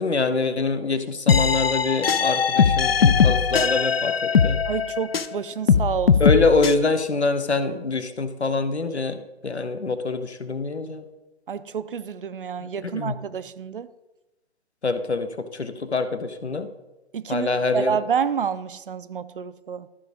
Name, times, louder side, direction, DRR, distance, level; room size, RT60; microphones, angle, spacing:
voice 1, 0.0-4.6 6.2-11.0 12.6-13.2 14.8-16.7 17.3-18.0, left 3 dB, 80° left, 1.1 m, -25 dB
sound 1, 1.3-5.4 5.7-6.7, left 6 dB, 60° left, 0.7 m, -20 dB
voice 2, 4.6-6.2 11.5-13.9 17.1-17.5 17.7-19.9, right 7 dB, 55° right, 0.6 m, -28 dB
13.5 x 5.0 x 5.0 m
figure-of-eight pair, 135°, 33 cm